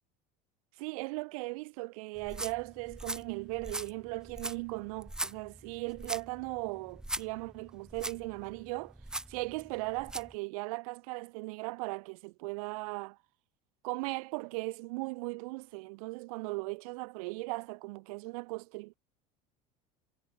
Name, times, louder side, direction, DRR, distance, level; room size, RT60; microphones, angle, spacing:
voice 1, 0.8-8.9 9.3-13.2 13.8-18.9, right 26 dB, 90° right, 1.3 m, -38 dB
sound 1, 2.2-10.4, right 1 dB, 5° right, 1.0 m, -42 dB
cardioid pair, 155°, 18 cm